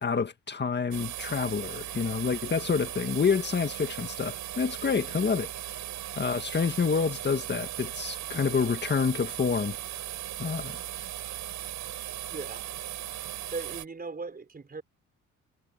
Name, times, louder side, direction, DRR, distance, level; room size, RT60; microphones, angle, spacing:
voice 1, 0.0-5.5 6.2-9.8 10.4-10.8, left 5 dB, 35° left, 1.7 m, -28 dB
sound 1, 0.9-13.9, right 12 dB, 75° right, 7.2 m, -38 dB
voice 2, 12.3-12.7 13.5-14.8, right 4 dB, 30° right, 5.2 m, -38 dB
cardioid pair, 90°, 30 cm